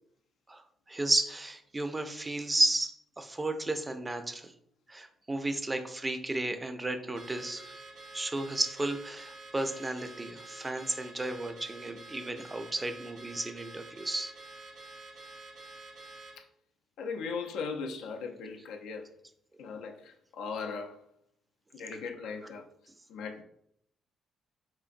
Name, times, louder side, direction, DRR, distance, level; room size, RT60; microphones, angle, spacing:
voice 1, 0.9-4.5 4.9-7.8 8.1-14.3, right 2 dB, 20° right, 0.4 m, -33 dB
Car / Alarm, 7.1-16.4, right 2 dB, 60° right, 0.7 m, -48 dB
voice 2, 17.0-19.1 19.6-21.0 21.7-22.7 23.1-23.4, left 5 dB, 90° left, 0.4 m, -38 dB
3.8 x 2.5 x 2.5 m
cardioid pair, 90°, 0 cm